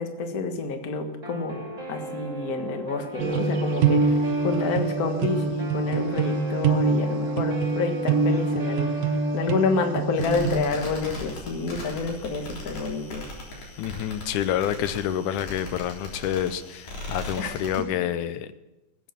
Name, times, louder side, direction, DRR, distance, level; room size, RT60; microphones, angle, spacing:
voice 1, 0.0-8.9 9.3-13.2 17.4-17.5, left 4 dB, 40° left, 5 dB, 1.5 m, -29 dB
Guitar, 1.2-9.9, equal, 25° right, 2.2 m, -36 dB
sound 1, 3.2-10.6, right 4 dB, 65° right, 2.0 m, -25 dB
sound 2, 10.2-17.8, left 2 dB, 70° left, 5.1 m, -38 dB
voice 2, 13.8-18.5, left 10 dB, 85° left, 12 dB, 2.2 m, -28 dB
20.0 x 8.6 x 6.9 m, 0.98 s
omnidirectional pair, 3.5 m